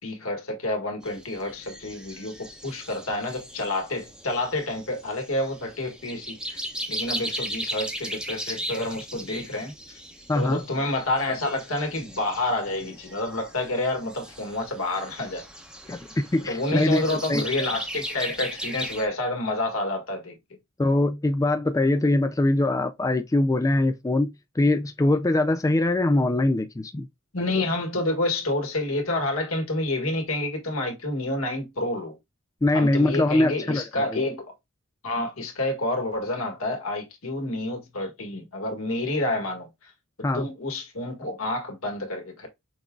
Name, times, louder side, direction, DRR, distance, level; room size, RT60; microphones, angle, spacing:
voice 1, 0.0-6.6 6.9-10.0 10.3-15.4 16.4-20.4 27.3-32.2 32.7-34.5 35.0-39.9 40.3-42.5, left 2 dB, 75° left, 1.8 m, -29 dB
sound 1, 1.0-19.1, right 1 dB, 5° right, 0.8 m, -37 dB
voice 2, 10.3-10.6 15.9-17.0 17.3-17.4 20.8-27.1 32.6-34.2 40.2-40.5, left 2 dB, 15° left, 0.3 m, -23 dB
5.9 x 3.7 x 2.3 m
head